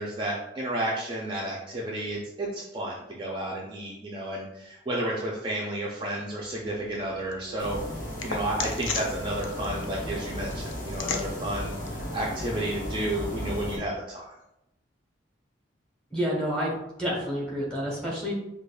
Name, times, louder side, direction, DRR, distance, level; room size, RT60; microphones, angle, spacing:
voice 1, 0.0-7.8 8.2-14.4, right 1 dB, 25° right, -4 dB, 0.4 m, -32 dB
sound 1, 6.4-13.2, left 5 dB, 75° left, 0.4 m, -39 dB
sound 2, 7.6-13.8, left 1 dB, 45° left, 0.8 m, -35 dB
voice 2, 16.1-16.7 17.0-18.3, equal, 5° left, -5 dB, 1.0 m, -29 dB
4.9 x 2.3 x 2.3 m, 0.87 s
head